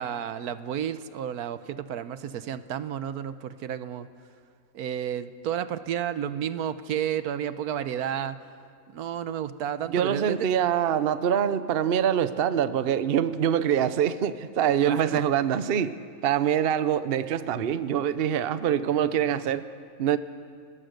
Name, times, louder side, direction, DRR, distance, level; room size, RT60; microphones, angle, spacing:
voice 1, 0.0-4.1 4.7-8.4 8.9-10.4 14.8-15.2, right 9 dB, 80° right, 12 dB, 1.3 m, -31 dB
voice 2, 9.8-16.0 16.2-19.6 20.0-20.2, right 9 dB, 50° right, 13 dB, 0.8 m, -24 dB
29.5 x 18.5 x 6.5 m, 2.3 s
omnidirectional pair, 1.6 m